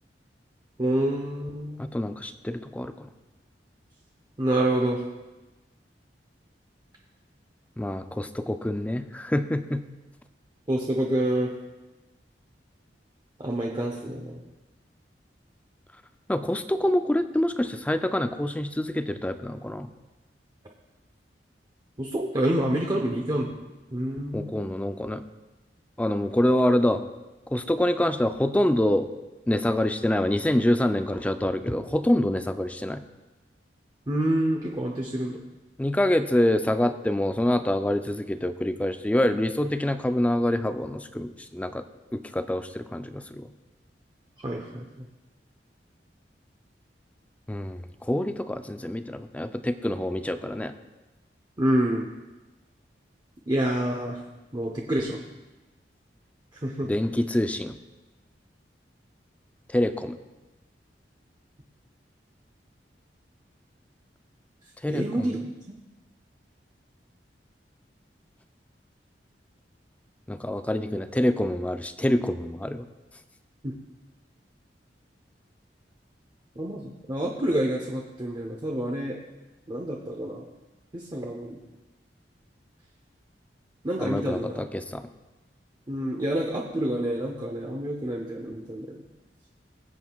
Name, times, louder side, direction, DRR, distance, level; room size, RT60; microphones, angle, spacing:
voice 1, 0.8-1.9 4.4-5.0 10.7-11.5 13.4-14.4 22.0-23.5 23.9-24.5 34.1-35.4 44.4-44.8 51.6-52.1 53.5-54.2 54.5-55.2 56.6-56.9 64.9-65.4 73.6-73.7 76.6-79.2 79.7-80.4 80.9-81.6 83.8-84.6 85.9-89.0, right 1 dB, 25° right, 0 dB, 0.8 m, -27 dB
voice 2, 1.8-3.1 7.8-9.8 16.3-19.9 24.3-25.2 26.0-27.0 27.5-29.1 29.5-33.0 35.8-41.8 42.1-43.5 47.5-50.7 56.8-57.8 59.7-60.2 64.8-65.3 70.3-72.9 84.0-85.0, left 1 dB, 10° left, 9 dB, 0.4 m, -26 dB
21.0 x 8.1 x 2.4 m, 1.1 s
head